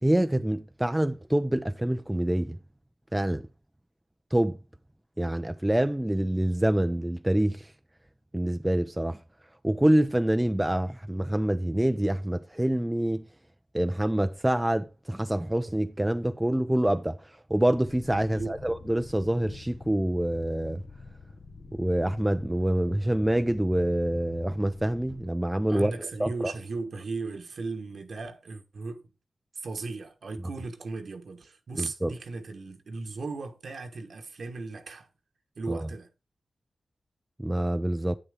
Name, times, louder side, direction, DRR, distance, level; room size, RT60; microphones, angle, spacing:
voice 1, 0.0-2.6 3.1-3.5 4.3-4.6 5.2-7.7 8.3-9.2 9.6-13.2 13.7-20.8 21.7-25.9 26.2-26.5 31.8-32.1 35.7-35.9 37.4-38.2, right 1 dB, 10° right, 0.5 m, -26 dB
sound 1, 17.7-25.3, left 4 dB, 55° left, 1.3 m, -47 dB
voice 2, 25.7-29.0 29.5-35.1 35.5-36.1, right 3 dB, 70° right, 1.2 m, -37 dB
8.7 x 7.9 x 3.6 m
cardioid pair, 45°, 0 cm